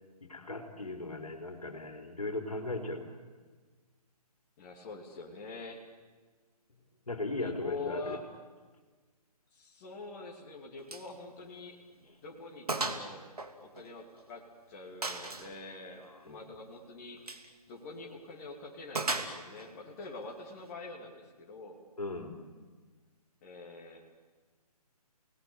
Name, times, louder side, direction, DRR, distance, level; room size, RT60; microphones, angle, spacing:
voice 1, 0.2-3.2 7.1-8.2 12.1-12.2 16.0-16.4 22.0-22.4, left 2 dB, 65° left, 5 dB, 3.9 m, -38 dB
voice 2, 4.6-5.8 7.4-8.2 9.5-11.8 12.2-13.3 13.6-21.8 23.4-24.1, left 3 dB, 25° left, -1 dB, 2.9 m, -45 dB
Gunshot gunfire, 10.9-11.1 11.4-11.6 12.0-12.1 12.7-13.1 13.4-14.3 15.0-15.5 17.2-17.5 18.9-19.7, right 3 dB, 70° right, 2.7 m, -35 dB
29.5 x 19.5 x 9.0 m, 1.4 s
figure-of-eight pair, 145°, 20 cm